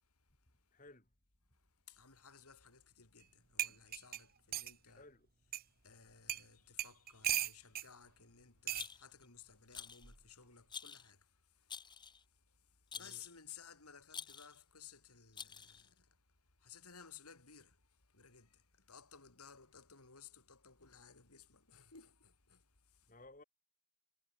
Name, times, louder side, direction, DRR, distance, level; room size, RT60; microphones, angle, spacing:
voice 1, 0.7-1.1 4.9-5.3 12.9-13.2 23.1-23.4, left 2 dB, 35° left, 4.1 m, -58 dB
voice 2, 1.9-5.1 5.8-11.8 12.5-16.2 16.6-23.1, left 7 dB, 90° left, 4.1 m, -58 dB
sound 1, 3.2-3.3 3.6-4.8 5.5-5.6 6.3-6.5 6.8-7.9 8.7-8.9 10.0-10.3, right 11 dB, 40° right, 1.9 m, -38 dB
Rattle, 8.7-9.2 9.7-10.1 10.7-11.1 11.7-12.2 12.9-13.3 14.1-14.6 15.3-15.9, left 6 dB, 20° left, 1.2 m, -48 dB
head